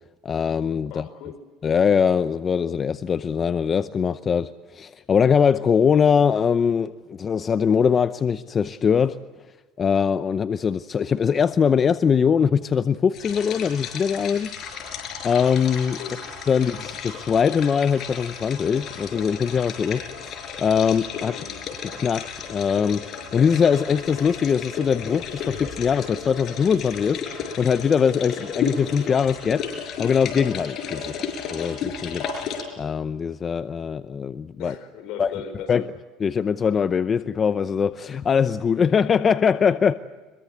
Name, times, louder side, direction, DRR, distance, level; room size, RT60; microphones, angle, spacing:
voice 1, 0.2-1.1 1.6-9.2 9.8-14.6 15.2-16.0 16.5-21.4 22.0-31.1 31.5-34.7 35.2-35.3 35.7-35.8 36.2-39.9, left 6 dB, 30° left, 12 dB, 0.7 m, -22 dB
voice 2, 0.9-1.4 16.0-16.2 16.6-16.7 21.3-21.6 31.0-31.3 34.6-35.9, left 7 dB, 65° left, 8 dB, 5.3 m, -38 dB
sound 1, 13.1-32.6, left 6 dB, 50° left, 5.6 m, -34 dB
24.5 x 22.5 x 8.1 m, 1.3 s
supercardioid pair, 115°, 0 cm